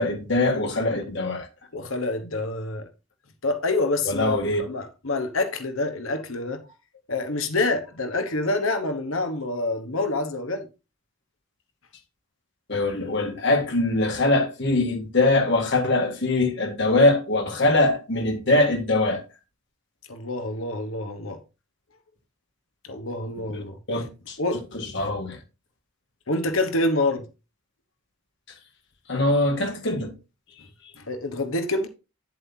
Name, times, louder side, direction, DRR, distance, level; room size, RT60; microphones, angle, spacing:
voice 1, 0.0-1.5 4.1-4.6 12.7-19.2 23.5-24.4 24.9-25.4 29.1-30.1, left 2 dB, 55° left, 1.8 m, -22 dB
voice 2, 1.7-2.9 3.4-6.6 7.1-10.7 20.1-21.4 22.9-23.8 24.4-24.6 26.3-27.2 31.1-31.9, left 2 dB, 70° left, 1.2 m, -27 dB
9.1 x 7.6 x 2.8 m
head